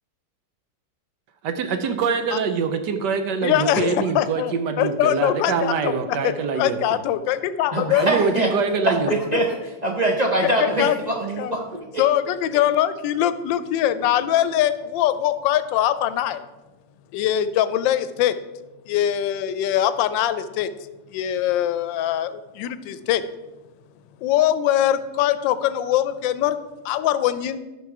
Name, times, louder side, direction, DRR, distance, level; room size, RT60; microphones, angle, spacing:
voice 1, 1.4-6.8 8.0-9.1, right 5 dB, 70° right, 8 dB, 1.3 m, -24 dB
voice 2, 3.4-8.1 10.4-11.0 11.4-11.5 12.0-16.4 17.1-18.3 18.9-20.7 21.1-23.2 24.2-26.6 26.8-27.6, left 11 dB, 85° left, 13 dB, 1.3 m, -22 dB
voice 3, 7.7-8.5 8.9-11.6 11.9-12.1, right 1 dB, 45° right, 2 dB, 0.5 m, -23 dB
11.5 x 5.9 x 4.7 m, 1.1 s
omnidirectional pair, 2.0 m